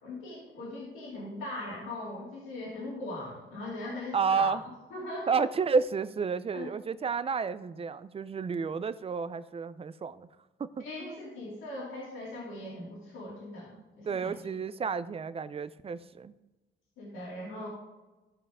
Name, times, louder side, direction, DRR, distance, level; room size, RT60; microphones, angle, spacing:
voice 1, 0.0-4.5 4.9-5.3 6.5-6.7 10.8-14.4 17.0-17.7, left 2 dB, 85° left, -5 dB, 3.0 m, -40 dB
voice 2, 4.1-4.6 5.3-10.3 10.6-11.2 14.0-16.3, right 5 dB, 30° right, 15 dB, 0.5 m, -31 dB
14.5 x 5.4 x 3.6 m, 1.1 s
cardioid pair, 90°, 20 cm